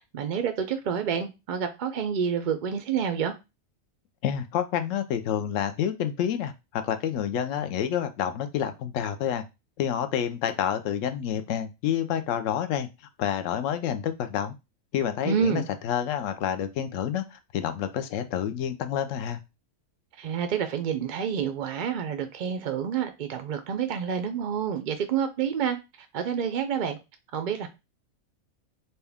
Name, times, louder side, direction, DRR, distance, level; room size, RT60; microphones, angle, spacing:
voice 1, 0.1-3.3 15.2-15.6 20.2-25.8 26.1-27.0 27.3-27.7, right 7 dB, 70° right, 0.4 m, -28 dB
voice 2, 4.2-9.4 9.8-12.9 13.2-14.5 14.9-19.4, left 9 dB, 75° left, 0.9 m, -28 dB
4.1 x 2.3 x 3.4 m
omnidirectional pair, 1.4 m